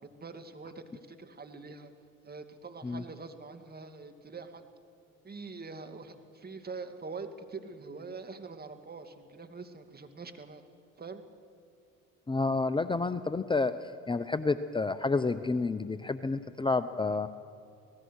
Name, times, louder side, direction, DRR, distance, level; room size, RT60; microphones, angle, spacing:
voice 1, 0.0-1.9 2.2-4.6 5.2-10.6 11.0-11.2 17.1-17.2, right 4 dB, 30° right, 7 dB, 2.3 m, -44 dB
voice 2, 12.3-13.8 14.1-17.3, left 3 dB, 15° left, 11 dB, 0.8 m, -29 dB
25.0 x 18.5 x 6.5 m, 2.5 s
supercardioid pair, 70°, 31 cm